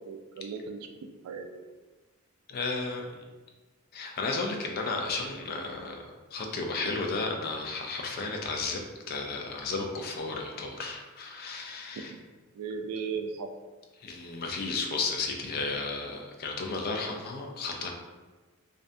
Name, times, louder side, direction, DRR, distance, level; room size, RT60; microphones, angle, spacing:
voice 1, 0.0-1.6 6.6-6.7 12.1-12.2 12.6-13.5, right 5 dB, 85° right, 10 dB, 0.3 m, -37 dB
voice 2, 2.5-3.1 3.9-8.8 9.1-12.1 14.0-17.9, left 3 dB, 45° left, 2 dB, 0.3 m, -33 dB
2.5 x 2.1 x 2.5 m, 1.2 s
head